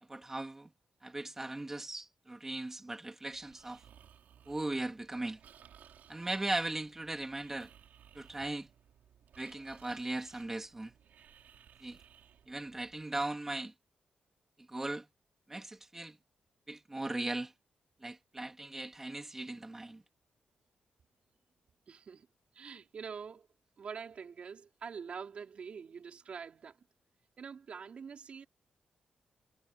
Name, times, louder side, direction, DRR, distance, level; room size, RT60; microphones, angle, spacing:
voice 1, 0.1-0.7 1.0-3.8 4.5-5.4 6.1-7.7 8.1-8.7 9.4-10.9 11.8-12.0 12.5-13.7 14.7-15.1 15.5-16.2 16.7-17.5 18.0-20.0, right 2 dB, 15° right, 3.1 m, -38 dB
Breathing, 3.3-13.0, right 9 dB, 85° right, 5.9 m, -60 dB
voice 2, 6.1-6.5 21.9-22.3 22.5-23.5 23.8-26.8 27.4-28.5, right 6 dB, 45° right, 4.5 m, -45 dB
wide cardioid pair, 170°, 3 cm